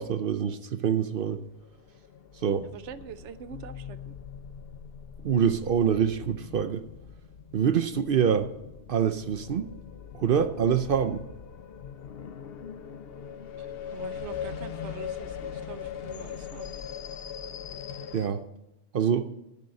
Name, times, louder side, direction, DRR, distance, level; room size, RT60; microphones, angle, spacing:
voice 1, 0.0-1.4 2.4-2.7 5.2-6.8 7.5-8.5 8.9-9.7 10.1-11.2 18.1-18.4 18.9-19.3, right 8 dB, 55° right, 10 dB, 0.8 m, -25 dB
sound 1, 1.4-18.3, left 8 dB, 65° left, 0.9 m, -41 dB
voice 2, 2.6-4.2 13.6-13.7 13.9-16.8, right 8 dB, 90° right, 13 dB, 1.0 m, -44 dB
12.0 x 6.7 x 7.7 m, 0.91 s
omnidirectional pair, 1.2 m